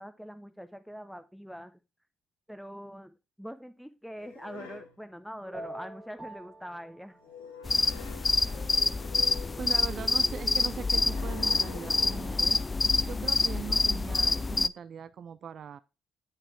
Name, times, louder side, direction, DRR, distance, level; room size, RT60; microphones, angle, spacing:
voice 1, 0.0-1.7 2.5-7.2, equal, ahead, 0.8 m, -43 dB
sound 1, 4.2-5.0 7.2-9.7 11.1-12.5, left 6 dB, 80° left, 1.0 m, -47 dB
sound 2, 5.4-7.6 8.1-9.2 10.9-12.3, right 1 dB, 20° right, 1.9 m, -47 dB
sound 3, 7.7-14.7, left 3 dB, 30° left, 0.3 m, -27 dB
voice 2, 9.6-12.6 13.0-15.8, right 8 dB, 50° right, 0.4 m, -41 dB
8.9 x 4.2 x 4.6 m
figure-of-eight pair, 45°, 0 cm